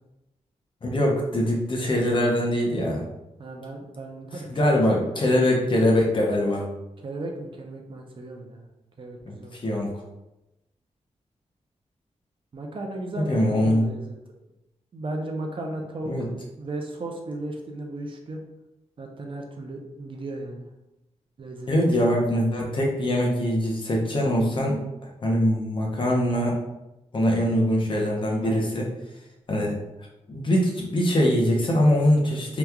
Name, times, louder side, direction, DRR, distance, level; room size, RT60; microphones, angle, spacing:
voice 1, 0.8-3.0 4.5-6.7 9.3-9.9 13.2-13.8 16.0-16.3 21.7-24.8 25.2-26.6 27.1-28.9 29.5-29.7 30.3-32.6, left 1 dB, 40° left, -1 dB, 0.7 m, -22 dB
voice 2, 3.4-4.7 5.1-5.2 7.0-8.6 9.0-9.6 12.5-14.1 14.9-16.3 16.6-18.4 19.0-20.7 21.4-21.7 28.4-28.7, right 2 dB, 45° right, 1 dB, 0.5 m, -35 dB
2.9 x 2.3 x 3.5 m, 0.95 s
wide cardioid pair, 140°, 12 cm